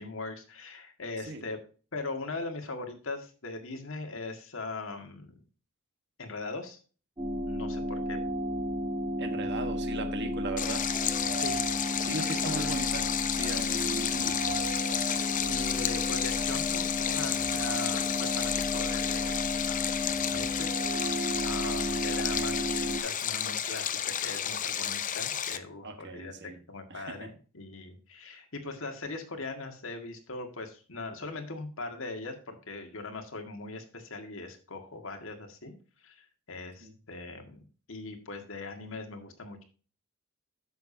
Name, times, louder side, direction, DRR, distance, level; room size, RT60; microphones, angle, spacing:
voice 1, 0.0-1.6 1.9-5.4 6.2-6.8 7.5-8.2 11.3-11.6 12.3-12.7 15.4-20.0 20.2-35.7 36.0-37.6 37.9-39.6, left 3 dB, 65° left, 1.9 m, -40 dB
sound 1, 7.2-23.0, left 1 dB, 20° right, 1.8 m, -33 dB
voice 2, 9.2-10.9 12.0-13.1 13.4-14.6 25.8-26.6 26.9-27.3 36.8-36.9, right 2 dB, 55° right, 1.4 m, -38 dB
Stream, 10.6-25.6, left 9 dB, 40° left, 0.6 m, -32 dB
10.5 x 6.9 x 2.8 m
head